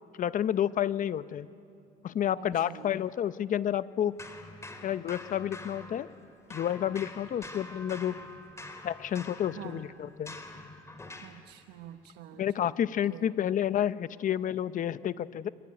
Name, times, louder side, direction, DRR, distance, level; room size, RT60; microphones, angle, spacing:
voice 1, 0.2-1.5 2.0-4.1 4.8-6.1 6.5-8.2 8.8-10.3 12.4-15.5, left 10 dB, 50° left, 14 dB, 0.8 m, -30 dB
voice 2, 2.4-2.9 9.6-9.8 11.2-12.7 13.1-13.3, right 11 dB, 85° right, 6 dB, 1.2 m, -47 dB
sound 1, 4.2-6.2 6.5-11.4, left 2 dB, 15° left, 3.1 m, -46 dB
25.5 x 22.5 x 9.9 m, 2.5 s
cardioid pair, 110°, 17 cm